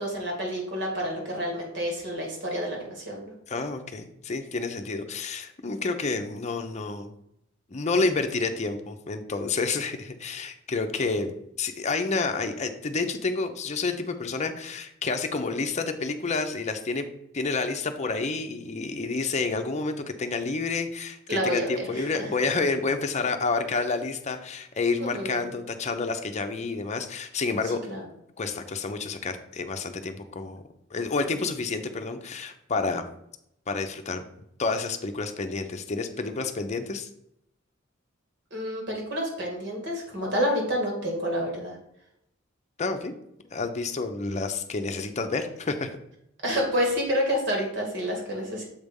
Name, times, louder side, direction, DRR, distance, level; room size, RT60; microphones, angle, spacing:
voice 1, 0.0-3.3 21.3-22.1 25.0-25.5 27.6-28.0 38.5-41.8 46.4-48.6, equal, 60° right, 0 dB, 2.2 m, -29 dB
voice 2, 3.5-7.1 7.7-17.1 17.3-27.8 28.4-30.6 30.9-33.0 33.7-34.2 34.6-37.1 42.8-43.1 43.4-46.0, left 3 dB, 35° left, 6 dB, 0.6 m, -29 dB
7.2 x 3.4 x 5.3 m, 0.78 s
head